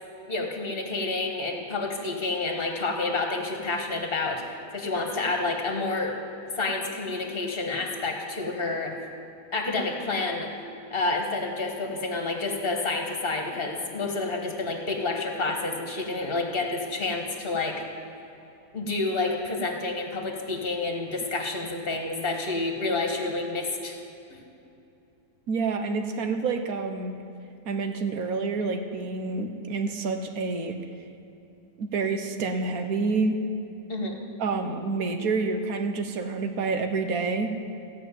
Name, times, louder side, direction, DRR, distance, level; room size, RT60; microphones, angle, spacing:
voice 1, 0.3-6.1 6.6-8.9 9.5-10.5 10.9-17.8 18.7-24.0 33.9-34.2, left 3 dB, 40° left, 2 dB, 1.7 m, -29 dB
voice 2, 25.5-27.1 27.6-30.8 31.8-33.4 34.4-37.5, right 4 dB, 70° right, 6 dB, 1.4 m, -28 dB
15.5 x 6.0 x 9.2 m, 2.8 s
omnidirectional pair, 1.6 m